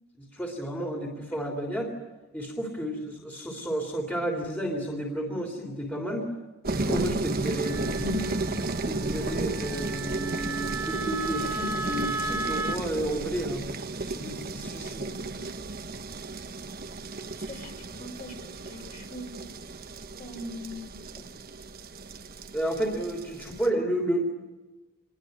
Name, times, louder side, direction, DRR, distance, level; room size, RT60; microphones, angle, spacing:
voice 1, 0.2-1.9 2.3-6.3 6.7-8.4 8.8-13.7 14.0-15.0 22.5-24.2, right 1 dB, 10° left, 1 dB, 3.3 m, -31 dB
sound 1, 6.6-23.7, right 2 dB, 45° right, 1.2 m, -34 dB
Wind instrument woodwind instrument, 7.6-12.8, right 3 dB, 10° right, 2.1 m, -35 dB
voice 2, 15.0-15.4 17.4-19.3 20.2-21.3, equal, 40° left, 2 dB, 5.9 m, -42 dB
27.0 x 22.0 x 9.2 m, 1.2 s
head